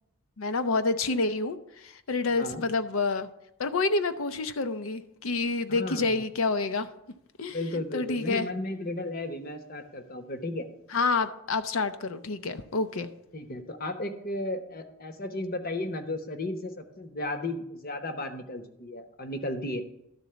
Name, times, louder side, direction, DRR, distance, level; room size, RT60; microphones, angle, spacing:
voice 1, 0.4-3.3 3.6-6.9 7.4-8.5 10.9-13.1, left 3 dB, 65° left, 10 dB, 0.6 m, -28 dB
voice 2, 5.7-6.2 7.5-10.7 13.3-19.8, left 1 dB, 40° left, 7 dB, 0.9 m, -34 dB
12.0 x 4.1 x 6.8 m, 0.81 s
head